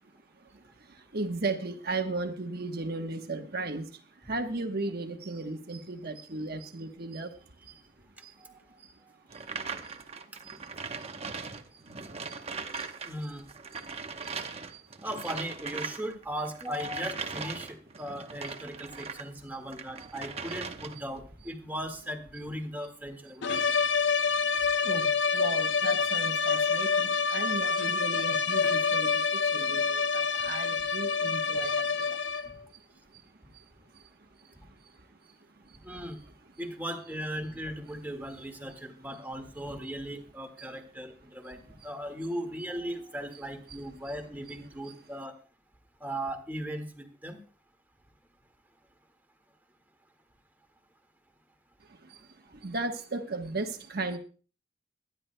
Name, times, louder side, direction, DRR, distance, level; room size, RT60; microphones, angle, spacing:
voice 1, 0.4-3.9 4.1-7.8 8.2-8.3 8.8-8.9 9.3-9.5 9.9-10.0 10.4-10.6 11.0-11.1 12.3-12.4 12.7-12.9 13.7-13.9 14.2-14.4 14.7-14.8 23.7-23.8 24.1-24.2 24.8-32.4 32.7-33.2 33.5-33.7 33.9-34.1 34.3-34.5 34.8-34.9 35.3-35.4 35.6-35.8 36.1-36.2 38.7-38.8 40.6-40.7 41.8-41.9 43.7-43.8 51.9-54.2, right 3 dB, 55° right, 5 dB, 1.1 m, -37 dB
sound 1, 9.3-13.1 13.4-19.3 19.7-21.1, right 5 dB, 35° right, 0.9 m, -39 dB
voice 2, 13.0-13.4 15.0-23.6 35.8-36.2 36.6-45.3 46.0-47.4, equal, 10° right, 4 dB, 1.8 m, -38 dB
sound 2, 23.4-32.6, left 5 dB, 75° left, 0.6 m, -27 dB
22.5 x 10.5 x 2.2 m, 0.38 s
head